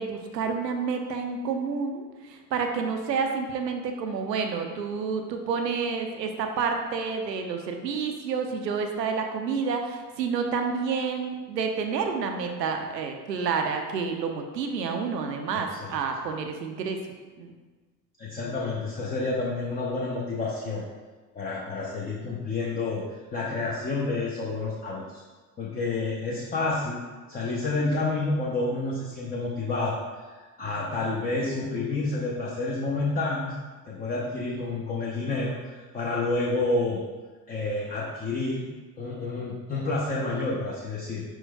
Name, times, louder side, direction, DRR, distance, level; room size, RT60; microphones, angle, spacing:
voice 1, 0.0-17.0 17.4-17.6 30.6-30.7, right 5 dB, 85° right, 4 dB, 0.6 m, -29 dB
voice 2, 18.2-20.8 21.3-23.0 23.3-25.2 25.6-29.9 30.4-33.6 33.9-37.0 37.5-38.7 39.0-41.2, left 3 dB, 20° left, -4 dB, 0.6 m, -29 dB
5.1 x 4.5 x 2.2 m, 1.3 s
figure-of-eight pair, 60°, 48 cm